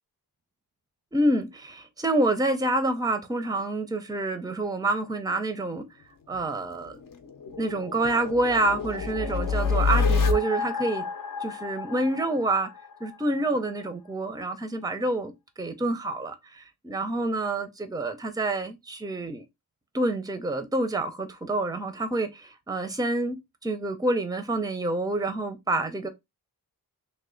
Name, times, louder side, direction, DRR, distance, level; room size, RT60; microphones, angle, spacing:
voice 1, 1.1-5.8 6.3-7.0 7.6-11.0 11.4-12.7 13.0-15.3 15.6-19.4 19.9-26.1, right 2 dB, 10° right, 0.5 m, -27 dB
sound 1, 6.3-13.1, left 4 dB, 60° left, 0.7 m, -29 dB
3.2 x 2.2 x 3.7 m
wide cardioid pair, 150°, 37 cm